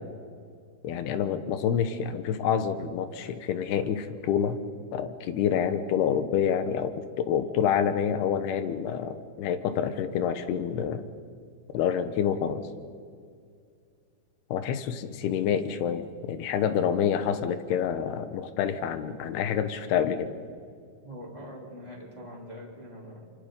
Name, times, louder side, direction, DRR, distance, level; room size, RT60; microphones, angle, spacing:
voice 1, 0.8-4.6 4.9-11.1 11.7-12.6 14.5-20.3, left 8 dB, 75° left, 10 dB, 2.4 m, -27 dB
voice 2, 21.0-23.3, equal, 10° left, -4 dB, 3.6 m, -43 dB
29.5 x 25.5 x 5.3 m, 2.2 s
omnidirectional pair, 5.9 m